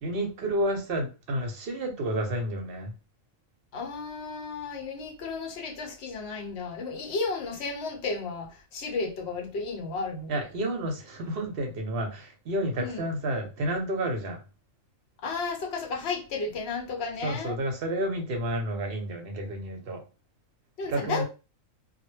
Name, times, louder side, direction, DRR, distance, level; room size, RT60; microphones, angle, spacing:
voice 1, 0.0-2.9 10.3-14.4 17.2-20.0 20.9-21.2, right 1 dB, 55° right, 0.7 m, -30 dB
voice 2, 3.7-10.4 12.8-13.0 15.2-17.6 20.8-21.2, left 4 dB, 60° left, 0.8 m, -33 dB
2.2 x 2.1 x 3.1 m
omnidirectional pair, 1.4 m